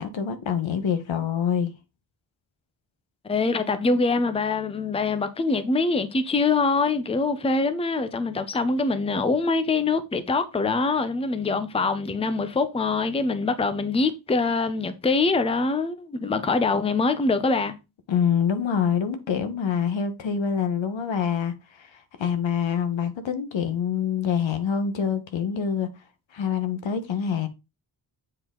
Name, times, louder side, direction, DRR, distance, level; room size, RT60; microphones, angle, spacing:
voice 1, 0.0-1.7 18.1-25.9 26.3-27.5, left 7 dB, 80° left, 1.2 m, -26 dB
voice 2, 3.2-17.7, left 3 dB, 15° left, 0.6 m, -24 dB
7.7 x 4.5 x 3.8 m
wide cardioid pair, 155°, 45 cm